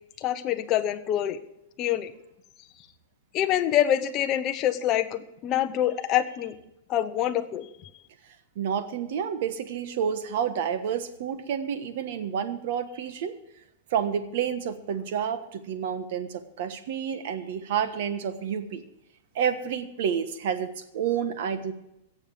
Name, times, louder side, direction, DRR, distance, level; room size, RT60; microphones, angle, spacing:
voice 1, 0.2-1.4 1.8-2.1 3.3-6.6 6.9-7.7, left 11 dB, 25° left, 8 dB, 0.8 m, -25 dB
voice 2, 8.5-13.3 13.9-18.8 19.3-21.7, right 8 dB, 55° right, 10 dB, 1.4 m, -29 dB
17.0 x 7.2 x 6.8 m, 0.85 s
supercardioid pair, 165°, 0 cm